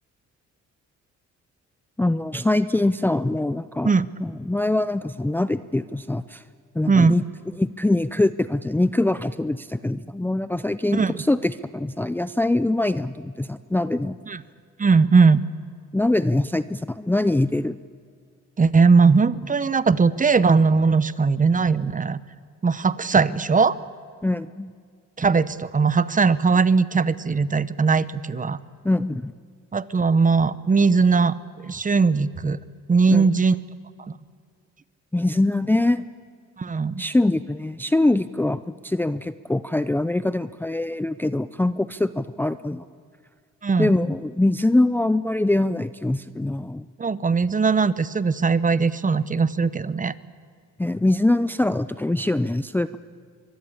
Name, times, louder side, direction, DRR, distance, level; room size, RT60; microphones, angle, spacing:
voice 1, 2.0-3.9 4.2-6.4 6.7-7.2 7.6-14.1 15.9-17.8 24.2-24.7 28.8-29.3 33.1-33.3 35.1-36.0 37.0-42.9 43.8-46.8 50.8-53.0, left 2 dB, 5° left, 13 dB, 0.5 m, -23 dB
voice 2, 14.8-15.4 18.6-22.2 22.6-23.8 25.2-28.6 29.7-32.6 32.9-33.6 36.6-37.0 43.6-43.9 47.0-50.1, right 4 dB, 25° right, 16 dB, 0.9 m, -19 dB
24.0 x 21.5 x 8.7 m, 2.1 s
cardioid pair, 90°, 30 cm